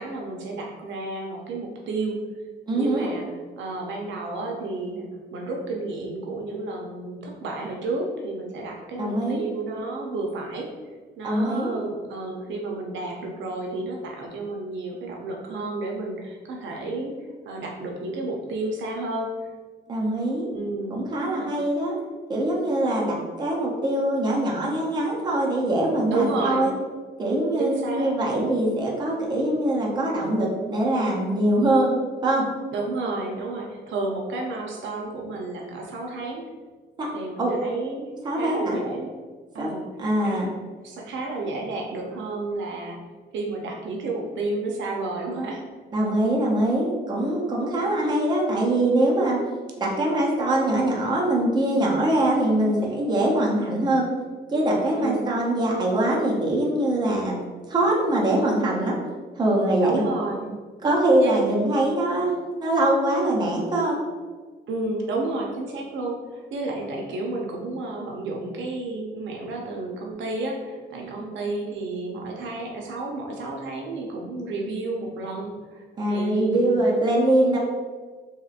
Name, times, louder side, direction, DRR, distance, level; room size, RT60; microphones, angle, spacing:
voice 1, 0.0-2.2 2.7-3.2 3.6-5.0 5.3-10.7 11.2-19.3 20.5-21.5 26.1-26.7 27.6-28.1 32.7-36.4 37.1-39.1 39.5-39.9 40.2-40.4 40.8-43.0 43.3-45.6 55.0-55.3 59.8-60.6 61.2-61.6 64.7-76.8, right 2 dB, 85° right, 1 dB, 0.5 m, -31 dB
voice 2, 2.7-3.1 9.0-9.4 11.2-11.8 19.9-20.5 20.9-21.9 22.3-26.7 27.2-31.9 32.2-32.5 37.0-37.1 37.4-37.5 38.2-38.8 39.6-39.7 40.0-40.5 45.9-49.4 49.8-54.1 54.5-57.4 57.7-59.0 59.4-60.0 60.8-64.0 70.9-71.3 76.0-77.6, right 1 dB, 25° right, -3 dB, 0.5 m, -23 dB
2.9 x 2.8 x 2.4 m, 1.5 s
wide cardioid pair, 160°, 19 cm